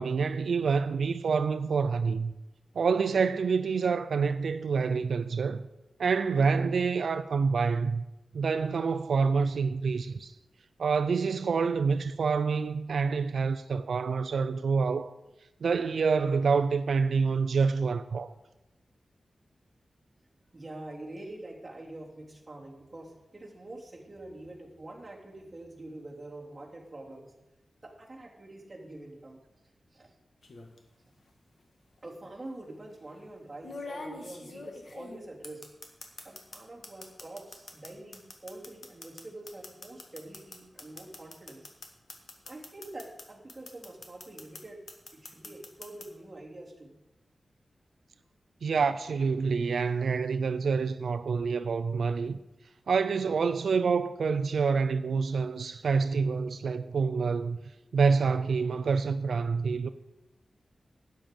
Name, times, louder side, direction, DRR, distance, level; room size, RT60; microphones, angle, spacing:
voice 1, 0.0-2.3 2.8-5.6 6.0-8.0 8.3-10.3 10.8-15.1 15.6-18.3 48.6-52.4 52.9-57.6 57.9-59.9, right 5 dB, 85° right, 0.4 m, -27 dB
voice 2, 20.5-27.3 27.8-29.4 29.9-30.1 32.0-35.7 36.2-41.7 42.4-44.8 45.1-46.9, right 2 dB, 25° right, 2.9 m, -45 dB
sound 1, 30.4-30.8 32.0-32.1 33.6-36.6 36.8-43.2 43.5-44.6 44.9-46.1, left 3 dB, 60° left, 1.8 m, -43 dB
12.5 x 9.1 x 5.2 m
wide cardioid pair, 120°, 0 cm